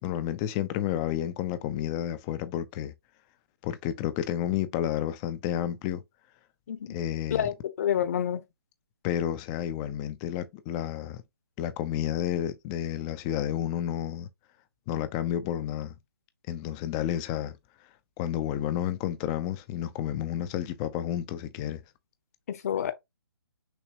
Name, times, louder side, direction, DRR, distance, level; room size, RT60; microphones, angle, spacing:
voice 1, 0.0-2.9 3.6-6.0 6.9-7.5 9.0-11.2 11.6-14.3 14.9-15.9 16.5-17.6 18.2-21.8, left 11 dB, 15° left, 0.4 m, -31 dB
voice 2, 7.3-8.4 22.5-22.9, left 9 dB, 40° left, 0.8 m, -28 dB
6.0 x 2.9 x 2.9 m
figure-of-eight pair, 140°, 13 cm